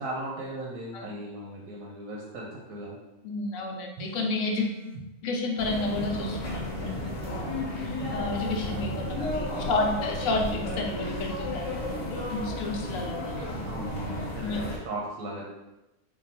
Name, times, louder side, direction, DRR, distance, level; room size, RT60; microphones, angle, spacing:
voice 1, 0.0-3.0 8.9-9.4 13.6-15.5, right 1 dB, 90° right, -3 dB, 1.1 m, -37 dB
voice 2, 3.2-4.8 5.2-6.9 8.1-13.6 14.4-14.6, left 2 dB, 85° left, 1 dB, 1.0 m, -31 dB
sound 1, 4.0-5.1 6.0-7.1 8.0-9.1, right 2 dB, 70° right, 0.9 m, -40 dB
sound 2, 5.6-14.8, left 1 dB, 65° left, 1.2 m, -33 dB
3.7 x 2.3 x 4.0 m, 0.98 s
omnidirectional pair, 1.4 m